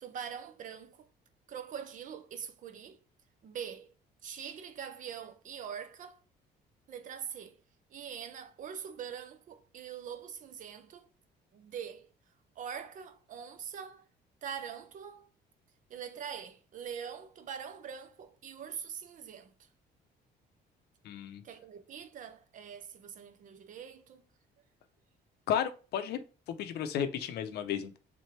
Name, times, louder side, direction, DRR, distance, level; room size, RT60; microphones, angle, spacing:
voice 1, 0.0-1.1 1.5-3.0 3.4-3.9 4.2-6.2 6.9-7.6 7.9-11.1 11.5-12.1 12.6-14.1 14.4-15.3 15.9-19.5 21.4-24.3, right 8 dB, 50° right, 0.6 m, -43 dB
voice 2, 21.0-21.4 25.5-26.2 26.6-28.0, left 9 dB, 70° left, 0.7 m, -33 dB
3.7 x 3.2 x 4.4 m
cardioid pair, 155°, 17 cm